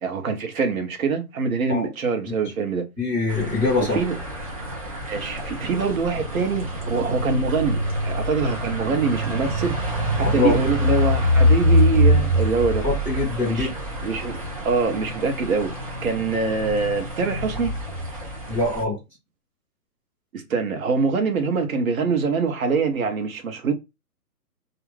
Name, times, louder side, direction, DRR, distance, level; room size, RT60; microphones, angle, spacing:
voice 1, 0.0-2.8 3.8-4.2 5.1-9.8 10.2-12.8 13.5-13.7 14.0-14.4 14.6-15.7 16.0-17.7 20.3-23.7, right 5 dB, 60° right, 1.0 m, -24 dB
voice 2, 3.0-4.0 10.2-10.5 12.8-13.7 14.0-14.1 18.5-19.0, left 3 dB, 5° right, 1.1 m, -23 dB
sound 1, 3.3-18.8, left 1 dB, 25° right, 0.5 m, -24 dB
2.4 x 2.4 x 3.1 m
hypercardioid pair, 150°, 47 cm